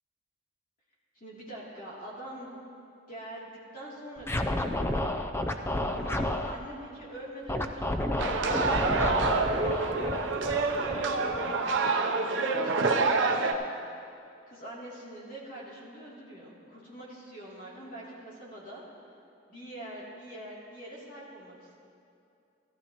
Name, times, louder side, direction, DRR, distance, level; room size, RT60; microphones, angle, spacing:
voice 1, 1.1-2.5 3.1-5.1 5.9-9.5 10.7-11.6 12.2-13.7 14.5-18.8 19.5-21.8, right 1 dB, 45° left, -6 dB, 2.9 m, -44 dB
Scratching (performance technique), 4.2-6.6 7.5-11.8, left 1 dB, 15° left, 0.4 m, -31 dB
sound 1, 8.2-13.5, right 3 dB, 75° right, 0.7 m, -27 dB
14.5 x 13.5 x 3.0 m, 2.6 s
head